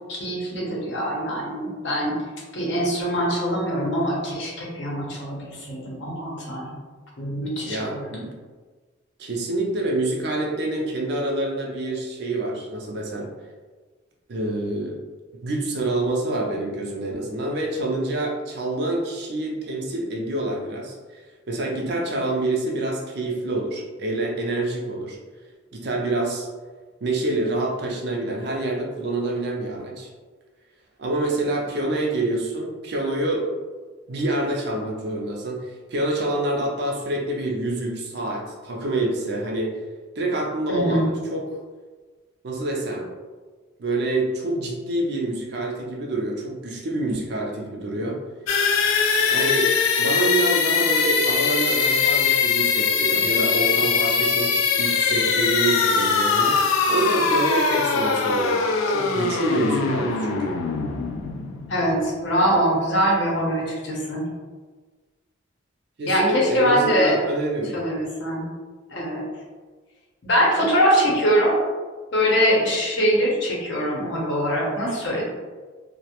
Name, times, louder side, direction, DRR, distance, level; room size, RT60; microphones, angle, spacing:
voice 1, 0.0-2.2 2.5-6.7 7.2-8.1 40.7-41.1 61.7-64.2 66.1-67.2 67.7-68.4 68.9-69.3 70.2-71.6 72.1-75.2, equal, 60° left, -3 dB, 0.7 m, -23 dB
voice 2, 7.7-8.3 9.2-13.3 14.3-15.0 15.4-25.2 25.7-26.5 27.0-30.1 31.0-33.5 34.1-39.7 40.2-41.4 42.4-43.1 43.8-48.2 49.2-60.6 62.5-62.6 66.0-67.8, right 2 dB, 55° right, -1 dB, 0.4 m, -27 dB
sound 1, 48.5-62.2, left 5 dB, 85° left, 0.3 m, -22 dB
2.3 x 2.1 x 2.8 m, 1.4 s
head